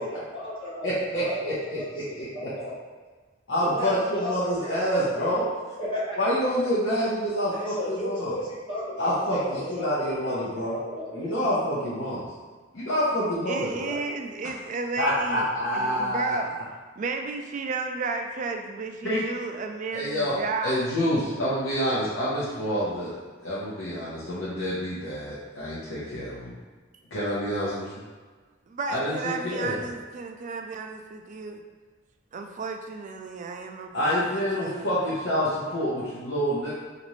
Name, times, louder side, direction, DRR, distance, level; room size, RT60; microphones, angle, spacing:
voice 1, 0.0-2.0 2.3-2.8 3.6-4.3 4.6-5.4 5.8-6.2 7.5-10.4 10.6-11.3, left 1 dB, 25° left, -8 dB, 1.1 m, -34 dB
voice 2, 0.8-1.8 2.2-2.5 3.5-5.5 6.2-8.3 9.0-10.8 11.1-12.3 12.7-14.0 15.0-16.4 19.0-19.2 19.9-23.2 23.4-26.5 27.1-28.0 28.9-29.8 33.9-36.7, equal, 75° left, -9 dB, 0.7 m, -27 dB
voice 3, 13.5-15.5 15.7-16.6 17.0-20.9 28.7-31.6 32.3-34.9, right 4 dB, 40° right, 4 dB, 0.3 m, -33 dB
4.0 x 2.5 x 3.1 m, 1.4 s
head